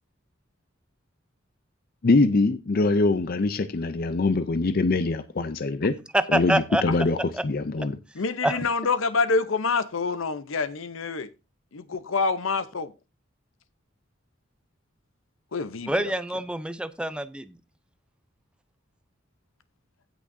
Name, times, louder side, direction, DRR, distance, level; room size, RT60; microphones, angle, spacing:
voice 1, 2.0-5.9 6.3-8.0, left 3 dB, 50° left, 0.5 m, -23 dB
voice 2, 6.1-7.4 8.4-8.6 15.9-17.6, right 1 dB, 5° right, 0.5 m, -26 dB
voice 3, 8.1-11.3 11.7-12.9 15.5-16.1, left 4 dB, 90° left, 0.8 m, -27 dB
16.5 x 6.1 x 2.7 m
head